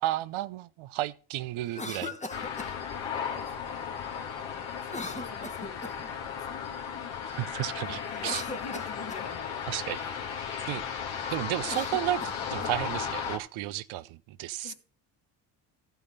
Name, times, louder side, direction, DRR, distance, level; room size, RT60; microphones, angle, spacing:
voice 1, 0.0-2.1 7.3-8.4 9.7-10.0 10.4-10.8 11.3-14.7, right 15 dB, 75° right, 0.6 m, -33 dB
Cough, 1.6-2.8 4.8-6.1 8.0-9.3 11.5-12.7, left 2 dB, 15° left, 1.1 m, -39 dB
sound 1, 2.3-13.4, left 7 dB, 70° left, 1.9 m, -35 dB
voice 2, 3.2-4.0 4.4-7.4 7.8-10.0 10.3-10.5 14.6-14.7, left 5 dB, 55° left, 2.2 m, -47 dB
14.0 x 5.5 x 5.4 m
hypercardioid pair, 50°, 49 cm